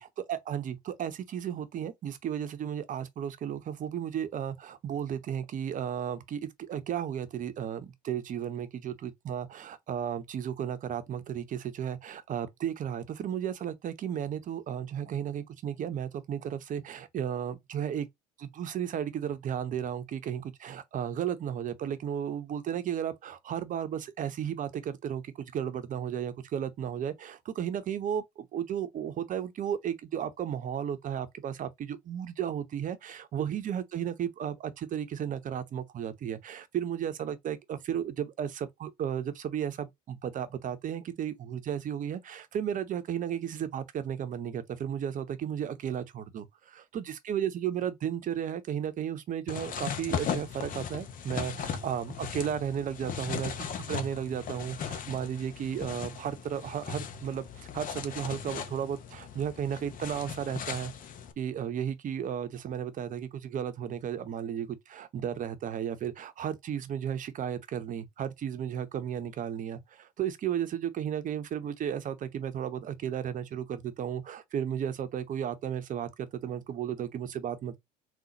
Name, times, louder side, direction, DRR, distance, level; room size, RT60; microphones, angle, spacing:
voice 1, 0.0-18.1 18.4-60.9 61.4-77.8, right 9 dB, 40° right, 0.8 m, -34 dB
sound 1, 49.5-61.3, left 7 dB, 40° left, 0.9 m, -38 dB
3.9 x 2.5 x 4.0 m
hypercardioid pair, 80°, 20 cm